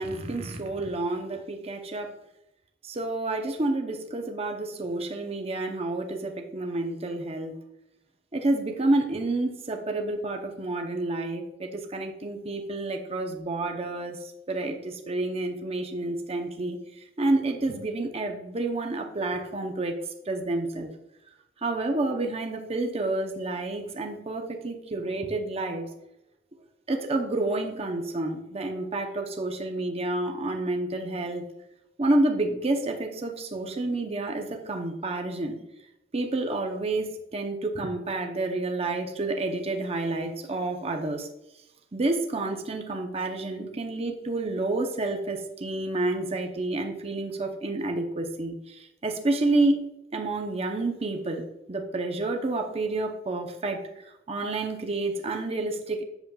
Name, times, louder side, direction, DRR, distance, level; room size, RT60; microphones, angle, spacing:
voice 1, 0.0-2.1 2.8-7.5 8.3-14.2 14.5-16.8 17.2-20.0 20.3-20.9 21.6-25.9 26.9-31.4 32.0-35.6 36.1-41.3 41.9-49.8 50.1-51.4 51.7-56.0, right 2 dB, 35° right, 3 dB, 0.7 m, -29 dB
8.0 x 7.0 x 2.3 m, 0.90 s
head